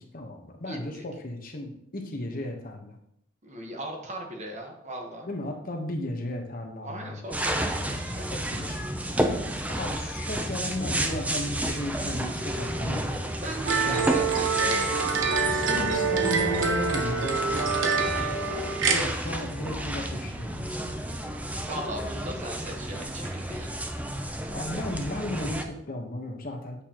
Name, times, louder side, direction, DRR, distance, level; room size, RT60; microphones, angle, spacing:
voice 1, 0.1-2.9 5.2-7.5 7.9-8.0 8.3-8.9 9.7-13.1 13.8-14.4 15.4-17.4 18.9-20.9 24.5-26.8, left 1 dB, 50° left, 2 dB, 1.1 m, -35 dB
voice 2, 0.7-1.0 3.4-5.3 6.8-8.3 9.2-9.5 13.4-14.9 18.0-18.4 21.7-23.8, right 1 dB, 40° right, 2 dB, 1.3 m, -38 dB
sound 1, 7.3-25.6, right 1 dB, 10° right, 0.6 m, -31 dB
sound 2, 13.7-19.0, right 5 dB, 80° right, 1.2 m, -26 dB
8.5 x 6.6 x 3.0 m, 0.74 s
head